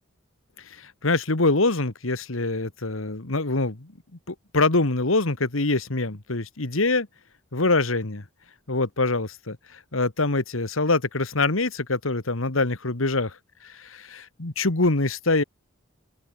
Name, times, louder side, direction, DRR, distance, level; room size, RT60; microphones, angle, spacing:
voice 1, 0.6-3.9 4.3-7.1 7.5-8.2 8.7-13.4 13.6-15.4, left 3 dB, 85° left, 1.9 m, -24 dB
open air
head